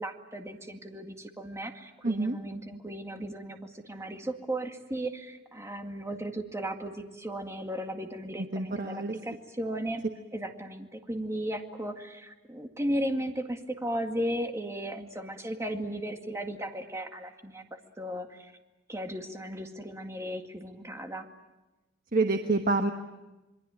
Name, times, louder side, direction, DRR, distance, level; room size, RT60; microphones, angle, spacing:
voice 1, 0.0-10.0 10.3-18.5 18.9-21.3, right 1 dB, 15° right, 4 dB, 2.1 m, -36 dB
voice 2, 2.0-2.4 8.5-9.1 22.1-22.9, right 3 dB, 50° right, 6 dB, 1.3 m, -27 dB
27.5 x 22.5 x 8.9 m, 1.1 s
head